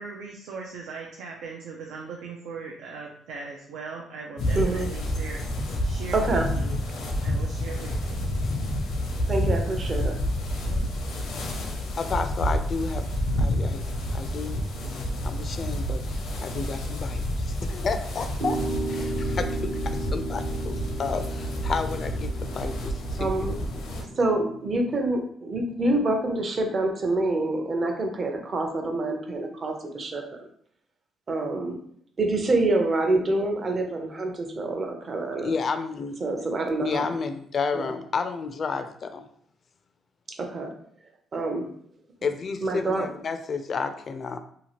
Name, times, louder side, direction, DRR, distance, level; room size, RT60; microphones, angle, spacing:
voice 1, 0.0-6.8 7.2-8.2 10.6-10.9, right 4 dB, 90° right, 0 dB, 0.4 m, -39 dB
sound 1, 4.4-24.0, equal, 85° left, 0.6 m, -29 dB
voice 2, 4.5-4.9 6.1-6.5 9.3-10.2 23.2-30.2 31.3-31.8 32.2-35.5 36.2-37.0 37.7-37.9 40.3-40.7 41.3-41.7 42.6-43.1, right 2 dB, 40° right, 3 dB, 0.6 m, -26 dB
voice 3, 12.0-13.1 13.4-13.8 14.1-18.6 18.9-23.5 35.4-36.2 36.8-39.3 42.2-44.4, left 5 dB, 50° left, 8 dB, 0.3 m, -31 dB
sound 2, 18.4-24.8, right 2 dB, 70° right, 0.9 m, -35 dB
2.8 x 2.4 x 2.9 m, 0.63 s
cardioid pair, 90°, 0 cm